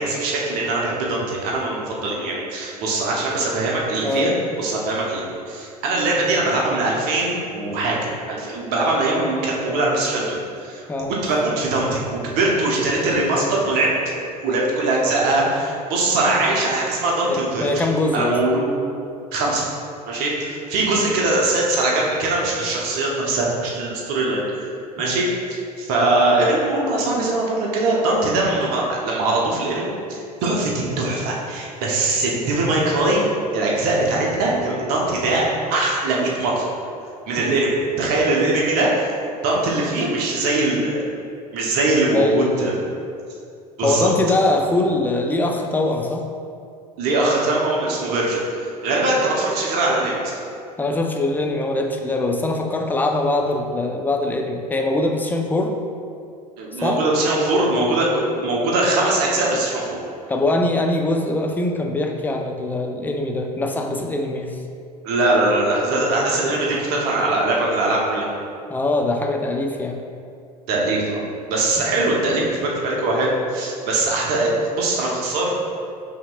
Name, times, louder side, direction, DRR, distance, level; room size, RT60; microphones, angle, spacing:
voice 1, 0.0-4.3 4.6-13.9 14.4-17.9 18.1-18.7 19.3-19.6 20.1-24.7 25.0-33.3 33.5-35.4 35.7-36.7 37.3-39.1 39.4-41.0 41.5-42.7 43.8-44.1 47.0-50.4 56.6-60.0 65.0-68.3 70.7-71.2 71.5-75.7, right 2 dB, 50° right, -3 dB, 0.9 m, -21 dB
voice 2, 17.3-18.4 25.0-25.2 37.4-37.7 42.1-42.9 43.8-46.2 50.8-55.8 56.8-57.0 60.3-64.6 65.9-66.0 68.7-70.0, left 2 dB, 10° left, 3 dB, 0.4 m, -22 dB
5.7 x 2.9 x 2.4 m, 2.4 s
figure-of-eight pair, 75°, 20 cm